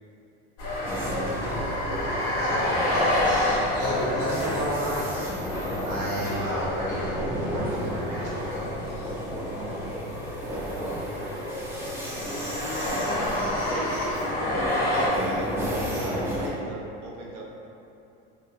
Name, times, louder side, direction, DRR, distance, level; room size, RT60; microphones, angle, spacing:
sound 1, 0.6-15.1, left 1 dB, 50° left, 0.8 m, -30 dB
sound 2, 0.8-16.5, equal, 5° right, 0.6 m, -32 dB
voice 1, 2.4-5.2 5.8-8.6, equal, 60° right, -8 dB, 1.0 m, -31 dB
voice 2, 12.5-13.1 13.7-17.4, right 1 dB, 85° right, -2 dB, 0.6 m, -38 dB
2.8 x 2.2 x 2.5 m, 2.7 s
hypercardioid pair, 80°, 33 cm